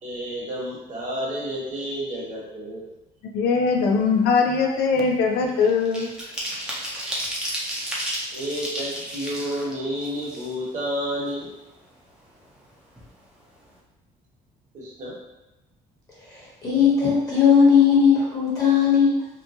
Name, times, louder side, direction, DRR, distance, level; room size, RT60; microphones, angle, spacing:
voice 1, 0.0-2.9 6.9-7.0 8.3-11.5 14.7-15.2, equal, 45° right, -4 dB, 1.1 m, -30 dB
voice 2, 3.3-6.1, left 5 dB, 70° left, 2 dB, 0.5 m, -21 dB
sound 1, 3.9-4.1 4.5-10.9 11.3-11.4 11.7-12.6 12.9-13.1 13.4-13.7, equal, 5° right, 0.7 m, -33 dB
voice 3, 16.1-19.3, left 6 dB, 20° left, -7 dB, 1.1 m, -18 dB
2.8 x 2.2 x 2.7 m, 0.97 s
cardioid pair, 110°, 17 cm